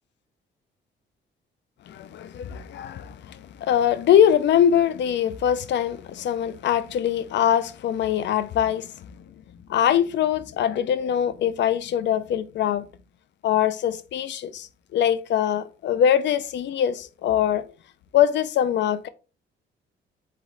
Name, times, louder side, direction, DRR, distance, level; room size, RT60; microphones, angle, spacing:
voice 1, 1.9-8.9 9.7-12.9 13.4-17.6 18.1-19.1, left 9 dB, 65° left, 0.5 m, -22 dB
3.8 x 3.2 x 3.8 m
cardioid pair, 90°, 20 cm